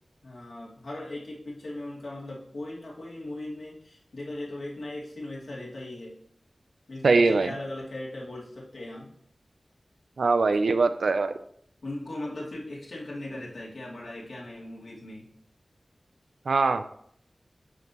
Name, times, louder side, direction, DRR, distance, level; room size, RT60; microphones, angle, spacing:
voice 1, 0.2-6.1 6.9-9.1 11.8-15.3, left 1 dB, 85° left, -5 dB, 2.6 m, -38 dB
voice 2, 7.0-7.5 10.2-11.3 16.5-16.8, right 3 dB, 85° right, 10 dB, 0.4 m, -22 dB
9.6 x 5.4 x 3.0 m, 0.66 s
cardioid pair, 45°, 0 cm